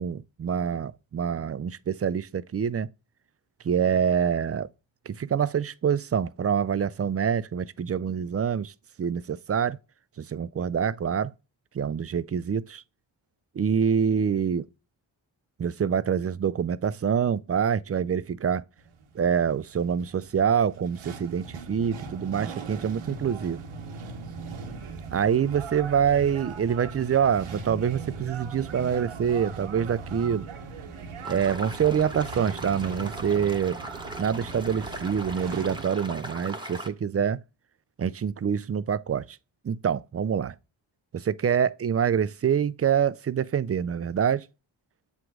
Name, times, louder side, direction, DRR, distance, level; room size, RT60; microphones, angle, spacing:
voice 1, 0.0-2.9 3.6-4.7 5.1-8.7 9.0-9.8 10.2-11.3 11.7-12.8 13.6-14.6 15.6-18.6 19.2-23.6 25.1-30.5 31.3-33.8 34.2-37.4 38.0-39.3 39.6-40.5 41.1-44.5, right 7 dB, 30° right, 0.4 m, -26 dB
sound 1, 18.8-35.8, right 5 dB, 80° right, 1.1 m, -39 dB
sound 2, 31.2-36.9, right 1 dB, 10° right, 1.1 m, -39 dB
7.5 x 3.0 x 4.7 m
supercardioid pair, 40°, 49 cm